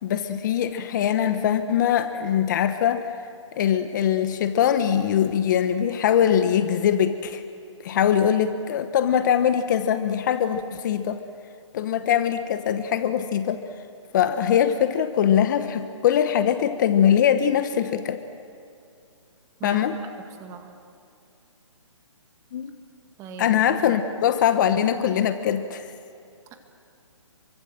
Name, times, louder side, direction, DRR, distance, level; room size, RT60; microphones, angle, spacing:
voice 1, 0.0-3.1 3.6-7.4 7.8-11.2 11.7-13.6 14.1-18.2 19.6-20.0 22.5-22.7 23.4-25.9, left 9 dB, 35° left, 10 dB, 1.2 m, -22 dB
voice 2, 20.4-20.7 23.2-23.5 23.8-24.0, right 9 dB, 20° right, 5 dB, 2.1 m, -39 dB
27.5 x 24.0 x 7.7 m, 2.5 s
hypercardioid pair, 150°, 17 cm